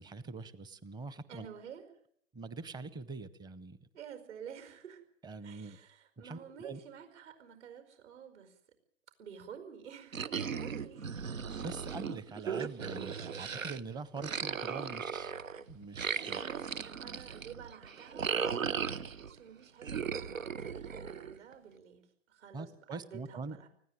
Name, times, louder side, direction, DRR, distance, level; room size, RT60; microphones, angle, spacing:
voice 1, 0.0-1.5 2.3-3.9 5.2-5.8 6.2-6.8 11.6-15.3 15.7-16.4 22.5-23.6, right 4 dB, 10° right, 17 dB, 0.8 m, -44 dB
voice 2, 1.3-1.8 3.9-5.0 5.4-8.6 9.2-11.4 13.4-13.6 14.6-14.7 16.3-22.0 22.3-23.7, right 8 dB, 60° right, 9 dB, 5.1 m, -50 dB
sound 1, 10.1-13.8 14.2-19.4 19.8-21.5, right 6 dB, 85° right, 1.1 m, -37 dB
20.0 x 16.0 x 9.2 m, 0.65 s
hypercardioid pair, 125°, 38 cm